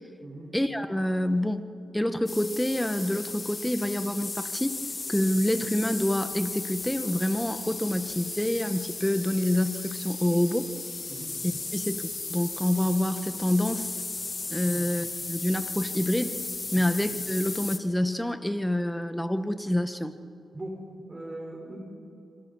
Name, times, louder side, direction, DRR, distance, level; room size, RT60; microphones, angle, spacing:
voice 1, 0.5-4.8 5.1-10.7 11.4-13.9 14.5-16.4 16.7-20.1, left 1 dB, 10° left, 10 dB, 1.5 m, -27 dB
sound 1, 2.3-17.8, left 3 dB, 40° left, 2.1 m, -36 dB
voice 2, 21.1-21.8, right 1 dB, 30° right, 0 dB, 5.5 m, -39 dB
26.0 x 26.0 x 5.7 m, 2.9 s
supercardioid pair, 45°, 0 cm